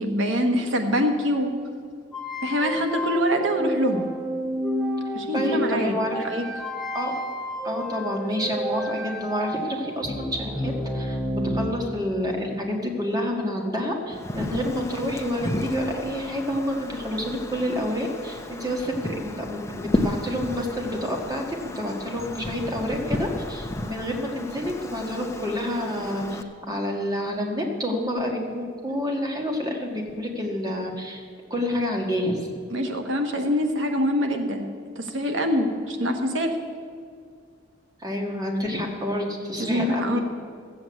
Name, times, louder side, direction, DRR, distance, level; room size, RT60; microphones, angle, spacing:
voice 1, 0.0-1.5 2.4-4.1 5.1-6.5 32.7-34.7 35.0-36.5 39.6-40.2, equal, 85° right, 4 dB, 1.2 m, -24 dB
sound 1, 2.1-11.7, equal, ahead, 1.2 m, -30 dB
voice 2, 5.3-6.2 6.9-7.1 7.6-26.4 26.7-31.2 31.5-32.5 35.6-35.7 38.0-40.2, equal, 20° right, 1 dB, 1.7 m, -28 dB
Wind, 14.1-26.4, left 1 dB, 15° left, 0.6 m, -33 dB
14.0 x 7.8 x 8.2 m, 2.1 s
head